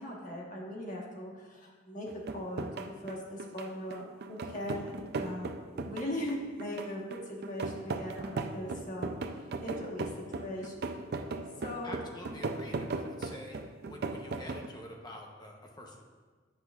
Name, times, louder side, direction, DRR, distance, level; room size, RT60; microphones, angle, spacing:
voice 1, 0.0-5.5 5.8-11.0 11.6-12.0, left 1 dB, 45° left, -2 dB, 1.3 m, -40 dB
sound 1, 2.1-14.7, right 3 dB, 55° right, 0.4 m, -37 dB
voice 2, 11.8-13.6 13.9-16.0, left 1 dB, 20° left, 0 dB, 0.8 m, -47 dB
10.0 x 5.9 x 2.4 m, 1.4 s
head